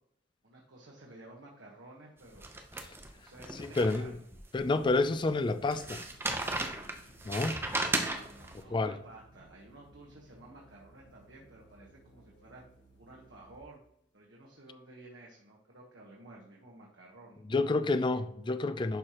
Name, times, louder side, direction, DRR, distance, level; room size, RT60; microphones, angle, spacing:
voice 1, 0.4-2.5 3.1-4.2 7.4-12.6 13.0-13.8 14.1-17.5, right 2 dB, 85° right, 1.3 m, -53 dB
sound 1, 2.4-4.4 4.8-4.9 5.7-8.5, right 2 dB, 15° right, 0.7 m, -35 dB
voice 2, 3.8-4.1 4.5-6.1 7.2-7.5 8.7-9.0 17.5-19.0, left 3 dB, 25° left, 0.4 m, -29 dB
sound 2, 4.6-13.7, right 1 dB, 85° left, 2.3 m, -60 dB
10.5 x 4.8 x 3.0 m
head